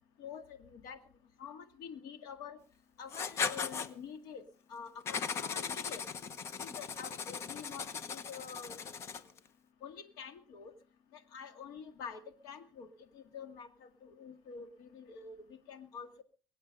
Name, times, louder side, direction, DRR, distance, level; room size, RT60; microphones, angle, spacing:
voice 1, 0.2-1.0 1.4-2.6 3.0-6.0 6.6-8.9 9.8-10.7 11.1-12.9 13.1-16.2, left 6 dB, 75° left, 9 dB, 2.0 m, -47 dB
Writing, 3.1-3.9 5.1-9.4, left 6 dB, 45° left, 1.1 m, -38 dB
23.0 x 8.7 x 5.3 m, 0.41 s
cardioid pair, 130°, 7 cm